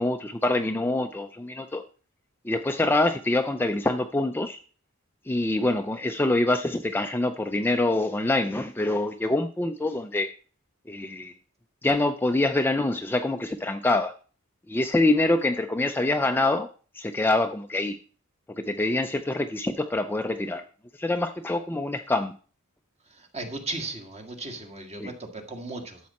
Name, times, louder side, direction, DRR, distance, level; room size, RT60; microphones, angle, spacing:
voice 1, 0.0-1.8 2.5-4.6 5.3-10.3 10.9-11.3 11.8-14.1 14.7-16.7 17.0-18.0 18.6-20.6 21.0-22.3 25.0-25.1, left 2 dB, 10° left, 6 dB, 0.4 m, -25 dB
voice 2, 23.2-26.0, right 2 dB, 30° right, 5 dB, 1.7 m, -36 dB
12.0 x 7.4 x 4.2 m, 0.39 s
head